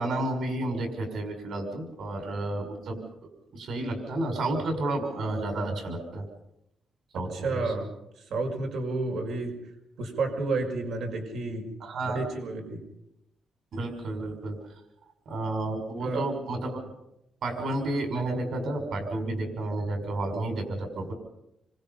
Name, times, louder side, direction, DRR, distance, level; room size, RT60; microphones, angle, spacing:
voice 1, 0.0-3.0 3.5-6.3 7.1-7.7 11.8-12.2 13.7-14.6 15.3-16.8 17.4-21.1, right 2 dB, 55° right, 5 dB, 5.9 m, -31 dB
voice 2, 7.3-7.9 8.2-9.7 10.0-11.7 12.0-12.8 15.9-16.3, right 3 dB, 80° right, 3 dB, 5.6 m, -31 dB
28.5 x 25.0 x 5.6 m, 0.84 s
wide cardioid pair, 180°, 0 cm